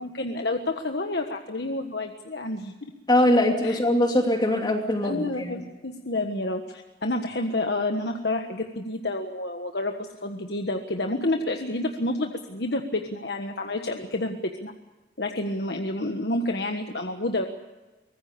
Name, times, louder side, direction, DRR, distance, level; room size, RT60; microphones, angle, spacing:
voice 1, 0.0-2.7 3.6-3.8 5.0-9.9 10.2-14.7 15.2-17.5, left 2 dB, 65° left, 4 dB, 1.4 m, -29 dB
voice 2, 3.1-5.5, left 1 dB, 25° left, 3 dB, 2.6 m, -22 dB
24.0 x 19.5 x 6.8 m, 1.2 s
head